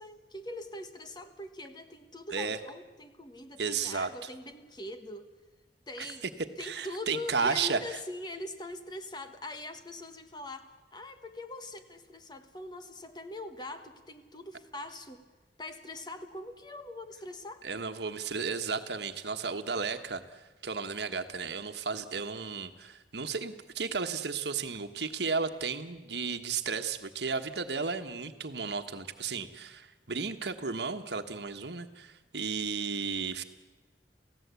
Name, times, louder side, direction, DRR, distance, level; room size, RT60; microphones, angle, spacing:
voice 1, 0.0-5.3 5.9-6.3 6.6-15.2 15.6-17.7, left 1 dB, 25° left, 8 dB, 1.4 m, -42 dB
voice 2, 3.6-4.3 6.0-6.3 6.6-8.0 17.6-33.4, right 5 dB, 75° right, 8 dB, 1.3 m, -34 dB
29.0 x 16.0 x 8.3 m, 1.2 s
head